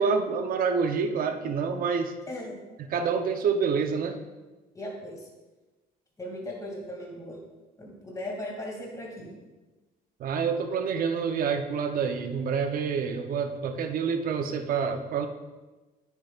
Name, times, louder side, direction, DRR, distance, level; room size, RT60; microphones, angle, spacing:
voice 1, 0.0-2.1 2.8-4.2 10.2-15.3, right 6 dB, 60° right, 7 dB, 0.8 m, -27 dB
voice 2, 4.7-5.3 6.2-7.4 7.8-9.3, left 1 dB, 20° left, -1 dB, 2.5 m, -37 dB
9.5 x 8.2 x 2.5 m, 1.2 s
cardioid pair, 110°, 17 cm